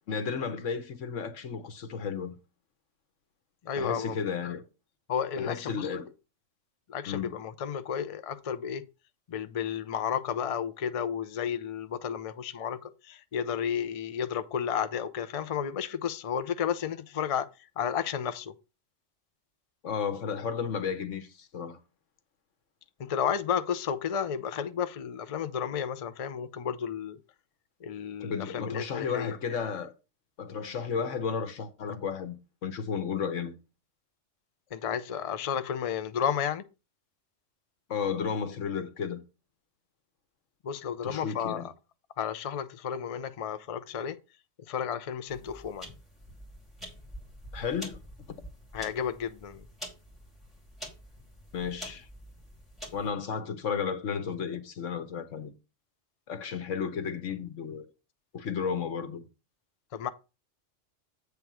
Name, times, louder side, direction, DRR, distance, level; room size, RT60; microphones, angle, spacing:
voice 1, 0.1-2.3 3.8-4.6 5.4-6.1 7.1-7.3 19.8-21.8 28.2-29.9 30.4-32.4 32.6-33.5 37.9-39.2 41.0-41.7 47.5-48.0 48.3-48.4 51.5-52.1 52.9-55.5 56.3-57.9 58.3-59.3, left 6 dB, 85° left, 1.3 m, -33 dB
voice 2, 3.6-4.2 5.1-5.9 6.9-8.9 9.3-17.5 17.8-18.5 23.0-27.2 27.8-29.3 34.7-36.6 40.6-41.7 42.2-44.2 44.6-45.9 48.7-49.7 59.9-60.1, left 8 dB, 45° left, 0.4 m, -32 dB
sound 1, 45.3-53.1, equal, ahead, 2.6 m, -46 dB
8.2 x 3.5 x 6.0 m
omnidirectional pair, 1.3 m